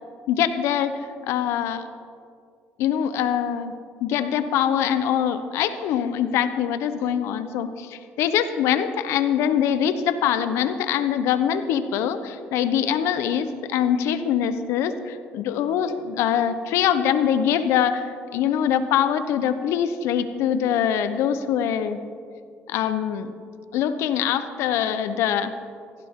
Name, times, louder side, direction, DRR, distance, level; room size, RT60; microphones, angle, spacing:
voice 1, 0.3-1.9 2.8-3.7 4.0-22.0 22.7-23.3 23.7-25.5, left 9 dB, 80° left, 11 dB, 0.9 m, -23 dB
17.0 x 16.0 x 3.7 m, 2.3 s
cardioid pair, 90°, 5 cm